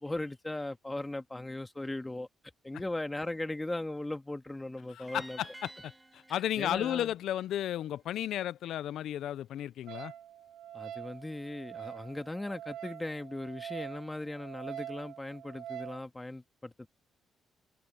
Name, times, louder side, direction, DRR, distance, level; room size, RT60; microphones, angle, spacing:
voice 1, 0.0-2.3 2.6-5.4 6.3-7.1 10.7-16.9, left 2 dB, 15° left, 1.9 m, -38 dB
voice 2, 4.9-10.1, left 12 dB, 75° left, 0.4 m, -34 dB
sound 1, 5.1-8.2, right 2 dB, 15° right, 1.8 m, -53 dB
Wind instrument woodwind instrument, 9.9-16.0, right 11 dB, 80° right, 1.0 m, -45 dB
cardioid pair, 90°, 0 cm